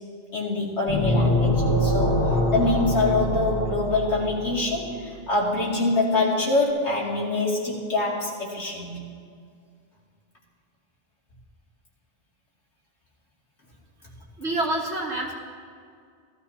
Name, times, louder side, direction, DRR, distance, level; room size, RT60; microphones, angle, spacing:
voice 1, 0.3-2.2 2.5-9.0, left 2 dB, 90° left, -5 dB, 2.9 m, -25 dB
sound 1, 0.9-4.6, left 1 dB, 15° left, 1.9 m, -24 dB
voice 2, 14.4-15.3, right 1 dB, 90° right, -1 dB, 2.0 m, -27 dB
17.5 x 13.0 x 2.9 m, 2.2 s
omnidirectional pair, 1.1 m